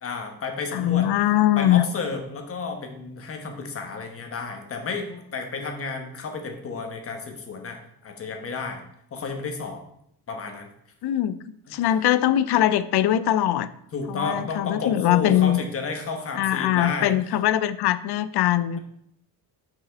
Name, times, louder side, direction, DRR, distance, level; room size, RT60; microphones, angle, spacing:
voice 1, 0.0-1.1 1.6-8.8 9.1-9.8 10.3-10.7 13.9-17.1, left 4 dB, 35° left, 4 dB, 1.0 m, -32 dB
voice 2, 0.7-1.8 11.0-11.4 11.7-13.7 14.1-15.6 16.4-18.8, left 12 dB, 80° left, 14 dB, 0.5 m, -21 dB
5.8 x 5.6 x 4.4 m, 0.74 s
wide cardioid pair, 175°, 39 cm